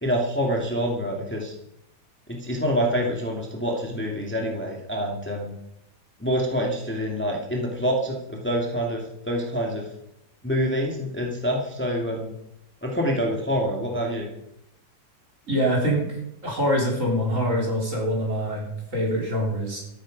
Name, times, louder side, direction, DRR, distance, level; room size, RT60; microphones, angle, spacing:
voice 1, 0.0-1.5 2.3-5.5 6.2-9.8 10.4-12.3 12.8-14.3, equal, 5° left, 0 dB, 2.1 m, -26 dB
voice 2, 15.5-16.1 16.4-19.8, equal, 45° right, -1 dB, 4.3 m, -24 dB
13.5 x 12.5 x 5.2 m, 0.80 s
omnidirectional pair, 1.9 m